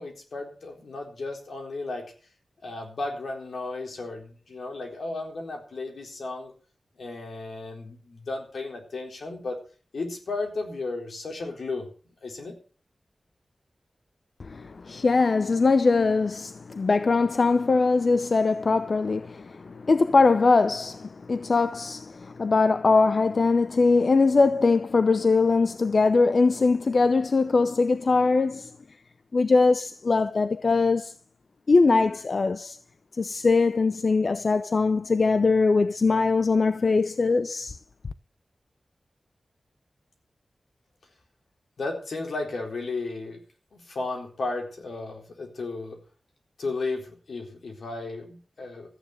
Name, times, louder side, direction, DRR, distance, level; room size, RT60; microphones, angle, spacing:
voice 1, 0.0-2.1 2.6-6.5 7.0-9.6 9.9-11.9 12.2-12.5 41.8-43.4 43.7-46.0 46.6-49.0, left 3 dB, 80° left, 4.0 m, -34 dB
voice 2, 14.4-28.7 29.3-31.1 31.7-32.8 33.2-37.8, left 4 dB, 60° left, 0.6 m, -22 dB
14.0 x 9.6 x 6.6 m
wide cardioid pair, 70°, 0 cm